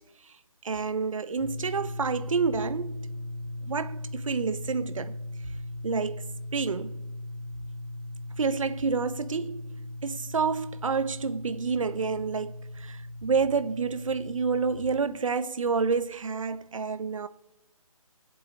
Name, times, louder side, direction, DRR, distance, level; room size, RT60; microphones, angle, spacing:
voice 1, 0.6-3.0 3.7-5.1 5.8-6.2 6.5-7.0 8.4-9.7 10.0-17.3, right 5 dB, 60° right, 1.1 m, -29 dB
sound 1, 1.4-15.0, left 1 dB, 5° left, 2.8 m, -38 dB
17.5 x 8.2 x 8.9 m
figure-of-eight pair, 160°, 19 cm